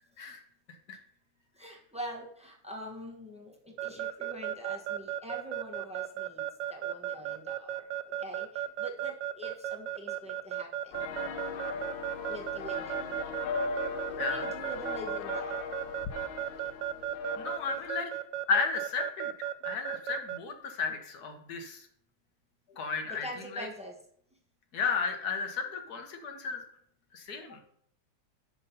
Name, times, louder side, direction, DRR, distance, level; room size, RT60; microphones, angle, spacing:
voice 1, 1.5-6.4 6.7-11.0 12.3-13.1 14.1-15.7 23.1-24.0, equal, 5° right, 0 dB, 0.9 m, -44 dB
Keyboard (musical) / Alarm, 3.8-20.4, right 12 dB, 70° right, 1.2 m, -34 dB
sound 1, 10.9-17.9, left 5 dB, 75° left, 1.5 m, -38 dB
voice 2, 14.2-14.5 17.4-18.1 18.5-19.3 19.6-21.8 22.8-23.3 23.5-23.7 24.7-26.6 27.1-27.6, left 5 dB, 55° left, 5 dB, 1.4 m, -33 dB
11.0 x 3.9 x 5.5 m, 0.67 s
omnidirectional pair, 2.2 m